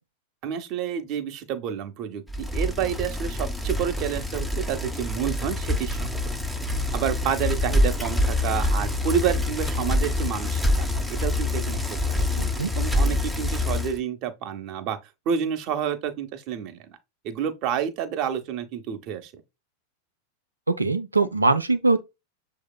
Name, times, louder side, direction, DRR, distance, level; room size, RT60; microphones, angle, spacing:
voice 1, 0.4-6.1 6.9-12.3 12.7-15.0 15.3-17.0 17.2-19.3, right 8 dB, 40° right, 0.8 m, -29 dB
Bicycle, 2.3-14.0, left 1 dB, ahead, 0.5 m, -26 dB
voice 2, 12.4-12.7 20.7-22.0, right 3 dB, 80° right, 0.5 m, -22 dB
6.4 x 2.8 x 2.2 m
figure-of-eight pair, 90°, 0 cm